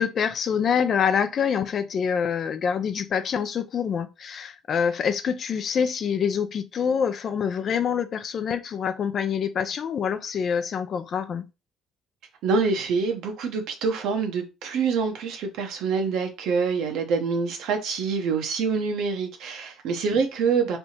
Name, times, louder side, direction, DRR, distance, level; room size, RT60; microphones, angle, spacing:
voice 1, 0.0-11.4, left 7 dB, 45° left, 0.5 m, -26 dB
voice 2, 12.4-20.8, right 5 dB, 75° right, 1.0 m, -26 dB
3.4 x 2.8 x 4.3 m
cardioid pair, 115°, 0 cm